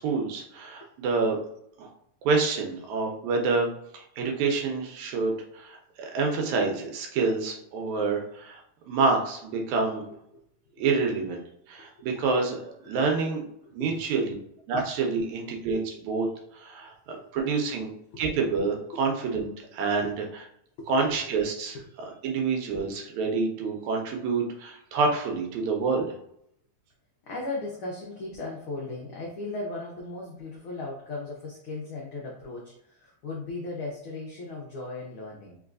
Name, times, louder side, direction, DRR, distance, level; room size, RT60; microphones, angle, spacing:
voice 1, 0.0-1.4 1.8-1.9 2.3-3.7 3.9-8.6 8.9-10.0 10.8-11.4 11.7-13.4 13.7-14.3 14.7-16.3 16.5-17.9 18.2-20.2 20.9-21.8 22.2-26.2, right 4 dB, 80° right, 2 dB, 2.1 m, -27 dB
voice 2, 27.2-35.6, left 2 dB, 80° left, -3 dB, 1.1 m, -37 dB
4.6 x 3.1 x 2.5 m, 0.74 s
omnidirectional pair, 3.4 m